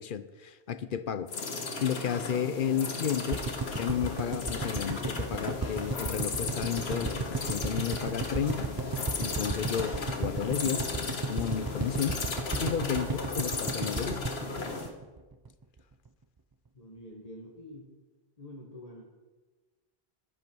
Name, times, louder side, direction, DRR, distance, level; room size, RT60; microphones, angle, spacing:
voice 1, 0.0-1.3 1.8-8.7 9.2-12.2 12.6-14.2, left 8 dB, 60° left, 14 dB, 0.8 m, -32 dB
sound 1, 1.3-14.9, left 4 dB, 80° left, 1.6 m, -36 dB
sound 2, 3.3-15.5 15.8-15.9 16.1-16.2, right 4 dB, 30° right, 0.4 m, -34 dB
voice 2, 16.7-17.9 18.4-19.0, left 1 dB, 40° left, -1 dB, 1.5 m, -46 dB
11.5 x 10.5 x 6.1 m, 1.3 s
omnidirectional pair, 1.1 m